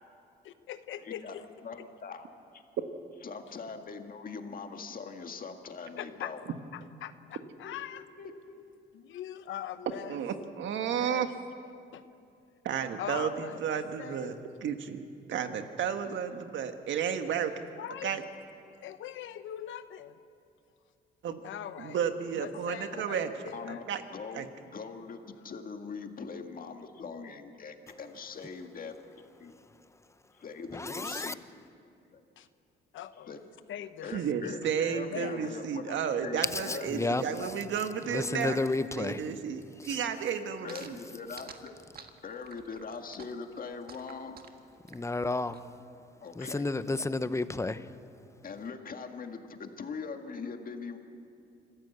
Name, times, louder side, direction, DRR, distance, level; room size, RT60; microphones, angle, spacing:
voice 1, 0.4-1.4 1.8-1.9 6.0-6.3 6.7-8.0 8.9-10.2 11.0-11.3 11.9-12.0 13.0-14.4 17.8-18.2 18.8-20.2 21.4-22.0 22.4-23.8 32.4-32.5 32.9-33.4 33.7-34.7 35.1-35.4, left 11 dB, 75° left, 1.0 m, -41 dB
voice 2, 1.0-1.4 1.6-2.3 2.5-2.6 3.2-6.4 7.6-8.6 22.9-23.0 23.5-29.5 30.3-31.4 32.1-32.2 33.3-33.4 34.0-37.5 40.6-41.7 42.2-44.4 46.2-46.6 47.1-47.2 48.4-51.0, left 5 dB, 45° left, 1.9 m, -42 dB
voice 3, 10.1-11.3 12.6-14.3 14.6-17.6 18.0-18.2 21.2-21.4 21.8-23.3 23.9-24.0 24.3-24.4 34.1-38.6 39.0-41.0, right 7 dB, 70° right, 1.5 m, -32 dB
voice 4, 30.7-31.3 36.5-37.2 38.1-39.3 39.8-40.0 44.9-45.6 46.4-47.9, left 2 dB, 15° left, 0.8 m, -32 dB
sound 1, 40.7-45.6, right 6 dB, 50° right, 1.6 m, -49 dB
26.0 x 14.0 x 8.0 m
cardioid pair, 90°, 20 cm